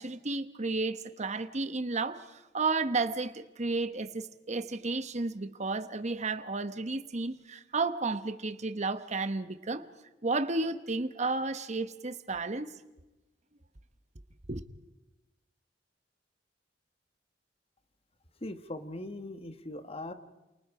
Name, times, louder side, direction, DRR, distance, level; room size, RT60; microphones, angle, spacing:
voice 1, 0.0-9.9 10.2-12.7 14.5-14.6, right 3 dB, 40° right, 1.1 m, -32 dB
voice 2, 18.4-20.1, left 1 dB, 35° left, 1.5 m, -40 dB
29.0 x 28.5 x 4.9 m
head